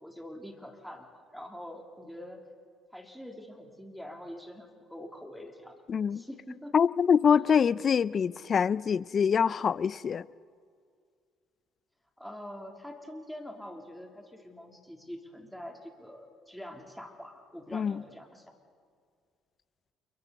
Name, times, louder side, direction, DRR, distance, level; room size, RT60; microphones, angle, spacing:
voice 1, 0.0-2.4 2.9-5.8 6.1-6.7 7.4-7.5 12.2-18.4, left 1 dB, ahead, 3.3 m, -45 dB
voice 2, 5.9-6.2 6.7-10.2 17.7-17.9, left 7 dB, 45° left, 0.5 m, -25 dB
29.0 x 22.5 x 4.2 m
supercardioid pair, 65°, 0 cm